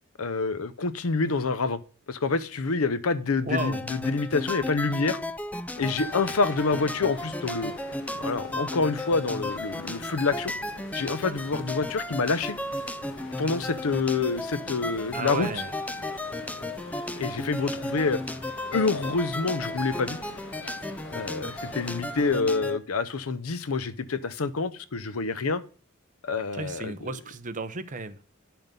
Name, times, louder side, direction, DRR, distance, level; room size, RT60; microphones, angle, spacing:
voice 1, 0.2-1.8 2.1-5.2 5.8-7.7 8.2-10.5 10.9-12.6 13.4-15.5 17.2-18.2 18.7-20.2 21.1-25.6 26.2-27.1, left 4 dB, 85° left, 0.7 m, -27 dB
voice 2, 3.5-3.8 15.1-15.7 26.5-28.2, right 3 dB, 40° right, 0.8 m, -33 dB
sound 1, 3.6-22.8, left 1 dB, 5° left, 0.4 m, -34 dB
sound 2, 5.7-22.4, left 3 dB, 60° left, 1.3 m, -45 dB
10.5 x 5.9 x 5.3 m
head